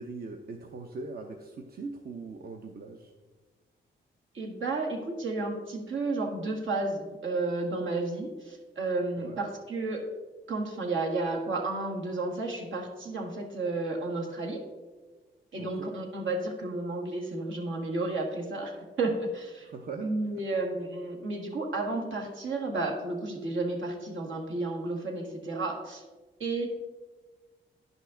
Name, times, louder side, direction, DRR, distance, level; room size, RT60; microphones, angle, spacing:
voice 1, 0.0-3.1 9.2-9.4 15.6-15.9 19.6-20.1, right 3 dB, 50° right, 3 dB, 0.7 m, -41 dB
voice 2, 4.3-10.1 10.5-14.6 15.5-19.7 20.0-26.0 26.4-26.7, right 2 dB, 75° right, 0 dB, 1.7 m, -32 dB
10.5 x 5.4 x 3.8 m, 1.3 s
cardioid pair, 80°, 20 cm